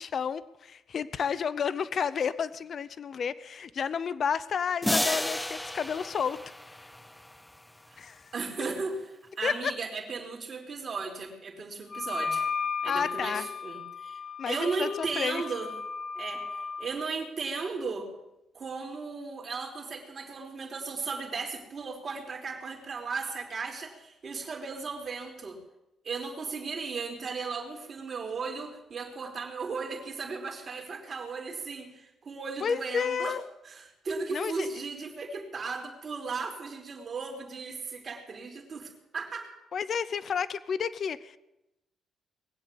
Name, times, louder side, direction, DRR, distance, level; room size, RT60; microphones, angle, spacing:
voice 1, 0.0-6.4 8.0-8.3 9.4-9.7 12.9-13.4 14.4-15.4 32.6-33.4 34.3-34.7 39.7-41.4, left 7 dB, 55° left, 16 dB, 0.7 m, -31 dB
sound 1, 4.8-7.3, left 1 dB, 10° left, 0.5 m, -31 dB
voice 2, 8.3-9.1 9.4-12.4 12.8-14.2 14.5-15.7 16.2-18.1 18.5-25.6 26.0-33.4 33.6-39.5, right 4 dB, 45° right, 2 dB, 3.6 m, -36 dB
Wind instrument woodwind instrument, 11.9-16.9, left 5 dB, 30° left, 2.0 m, -35 dB
20.5 x 8.1 x 8.5 m, 0.93 s
cardioid pair, 90°, 0 cm